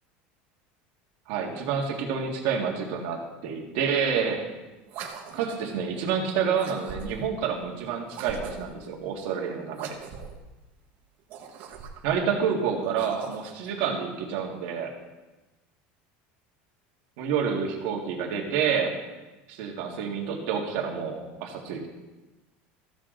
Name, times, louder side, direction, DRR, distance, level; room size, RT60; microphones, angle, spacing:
voice 1, 1.3-4.4 5.3-10.0 12.0-14.9 17.2-19.0 19.5-21.9, right 6 dB, 60° right, 1 dB, 1.9 m, -28 dB
sound 1, 4.8-5.7 6.5-7.4 8.1-8.8 9.7-10.4 11.2-12.2 12.8-13.7, right 6 dB, 45° right, 1.2 m, -41 dB
14.5 x 7.3 x 3.9 m, 1.1 s
cardioid pair, 170°, 5 cm